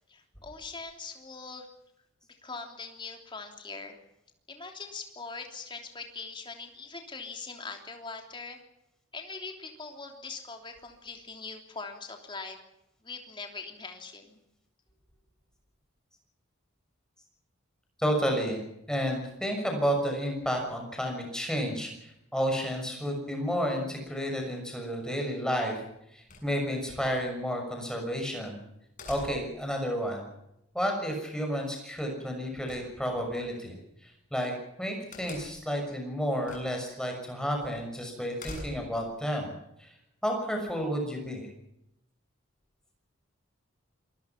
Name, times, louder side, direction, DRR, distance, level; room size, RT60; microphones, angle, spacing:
voice 1, 0.1-1.7 2.4-4.0 4.5-8.6 9.1-12.6 13.0-14.4, left 4 dB, 20° left, 3 dB, 3.3 m, -42 dB
voice 2, 18.0-25.7 26.1-28.6 29.1-30.2 30.7-34.5 34.8-39.9 40.2-41.5, equal, 5° left, 2 dB, 6.4 m, -31 dB
sound 1, 26.3-26.9 29.0-29.7 32.7-33.4 35.1-35.7 36.4-36.9 37.2-37.3 38.4-39.1, left 2 dB, 40° left, 7.3 m, -44 dB
26.5 x 20.5 x 6.0 m, 0.84 s
head